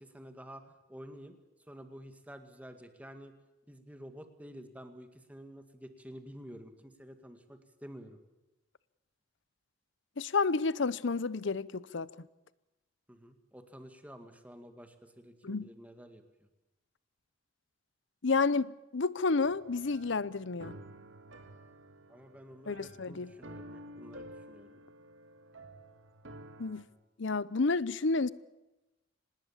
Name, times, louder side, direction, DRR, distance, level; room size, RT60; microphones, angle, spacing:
voice 1, 0.0-1.3 1.7-3.3 3.7-8.2 13.1-16.5 22.1-24.8, equal, 5° right, 1.9 m, -50 dB
voice 2, 10.2-12.3 15.4-15.7 18.2-20.8 22.7-23.3 26.6-26.8 27.2-28.3, left 4 dB, 65° left, 0.7 m, -30 dB
sound 1, 19.4-26.8, right 1 dB, 70° right, 2.1 m, -51 dB
25.5 x 20.0 x 7.3 m
head